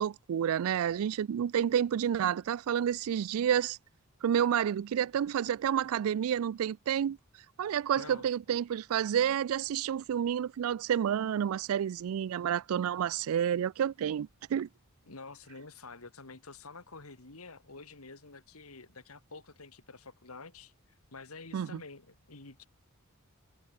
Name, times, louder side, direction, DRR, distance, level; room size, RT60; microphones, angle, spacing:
voice 1, 0.0-3.8 4.2-7.2 7.6-14.7 21.5-21.8, right 9 dB, 75° right, 0.3 m, -29 dB
voice 2, 8.0-8.3 15.1-20.7 21.1-22.7, left 3 dB, 80° left, 2.5 m, -48 dB
head